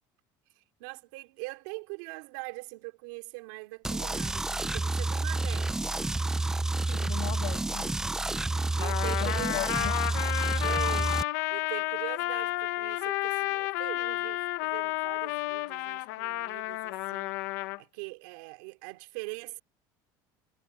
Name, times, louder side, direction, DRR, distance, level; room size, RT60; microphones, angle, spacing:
voice 1, 0.6-5.9 8.8-10.0 10.6-19.6, right 27 dB, 85° right, 2.9 m, -42 dB
sound 1, 3.8-11.2, right 2 dB, 5° right, 0.6 m, -29 dB
voice 2, 6.9-8.1 9.0-10.0, left 21 dB, 65° left, 2.8 m, -39 dB
Trumpet, 8.8-17.8, left 20 dB, 80° left, 1.6 m, -31 dB
cardioid pair, 170°, 10 cm